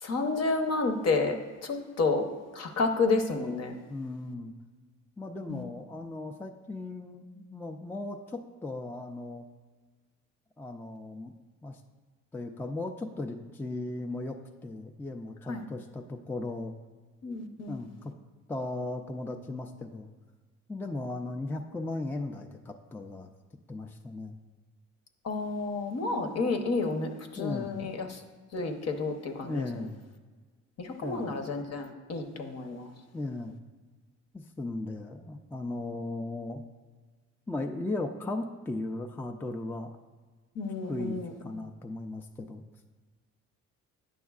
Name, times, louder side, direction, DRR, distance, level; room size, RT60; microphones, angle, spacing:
voice 1, 0.0-2.3 2.5-3.7 5.5-5.6 15.5-15.6 17.2-17.8 25.2-28.2 28.5-29.8 30.8-32.9 40.5-41.7, left 3 dB, 55° left, 5 dB, 0.9 m, -30 dB
voice 2, 3.9-4.5 5.2-9.5 10.6-11.3 11.6-11.8 12.3-16.7 17.7-18.1 18.5-20.1 20.7-23.3 23.7-24.4 27.4-27.7 29.4-30.0 31.0-31.3 33.1-33.6 34.3-36.6 37.5-40.0 40.9-42.6, left 2 dB, 5° left, 4 dB, 0.3 m, -37 dB
9.2 x 6.2 x 2.4 m, 1.4 s
cardioid pair, 90°, 30 cm